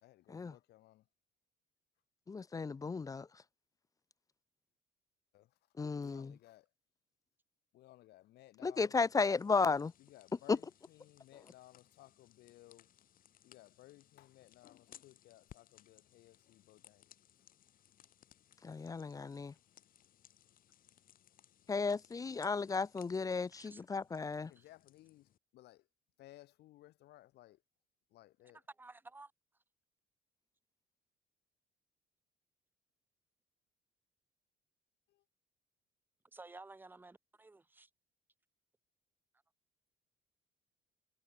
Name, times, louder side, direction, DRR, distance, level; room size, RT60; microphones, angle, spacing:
voice 1, 0.0-1.1 5.3-6.7 7.7-9.0 10.0-12.9 13.4-17.1 24.5-25.9 26.2-27.6 28.1-28.6 35.1-35.2, left 16 dB, 75° left, 2.5 m, -60 dB
voice 2, 2.3-3.3 5.8-6.3 8.6-9.9 18.6-19.5 21.7-24.5, left 4 dB, 20° left, 0.5 m, -34 dB
sound 1, 9.1-25.4, left 11 dB, 55° left, 2.5 m, -64 dB
voice 3, 28.8-29.3 36.3-37.9, right 3 dB, 10° right, 1.1 m, -54 dB
cardioid pair, 110°, 17 cm